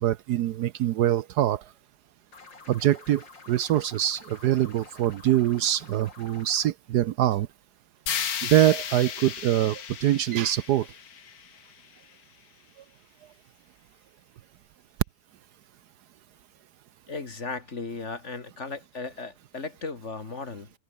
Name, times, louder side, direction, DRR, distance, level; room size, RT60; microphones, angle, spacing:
voice 1, 0.0-1.6 2.7-7.5 8.4-10.9, right 12 dB, 70° right, 1.2 m, -24 dB
sound 1, 2.3-6.7, left 4 dB, 85° left, 4.1 m, -49 dB
sound 2, 8.1-12.1, left 8 dB, 55° left, 1.7 m, -34 dB
voice 2, 17.1-20.7, left 4 dB, 40° left, 2.4 m, -36 dB
omnidirectional pair, 1.9 m